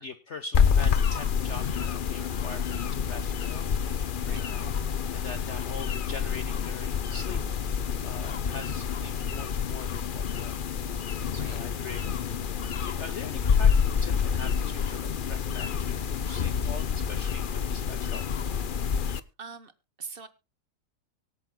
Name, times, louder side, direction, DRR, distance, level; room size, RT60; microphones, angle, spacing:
voice 1, 0.0-3.7 4.4-4.8 5.1-7.4 8.0-10.6 11.3-12.1 12.8-18.3, left 4 dB, 50° left, 9 dB, 1.0 m, -42 dB
sound 1, 0.5-19.2, left 7 dB, 75° left, 0.4 m, -28 dB
voice 2, 19.4-19.7 20.0-20.3, right 5 dB, 40° right, 13 dB, 1.0 m, -42 dB
24.5 x 8.7 x 2.2 m, 0.27 s
omnidirectional pair, 1.9 m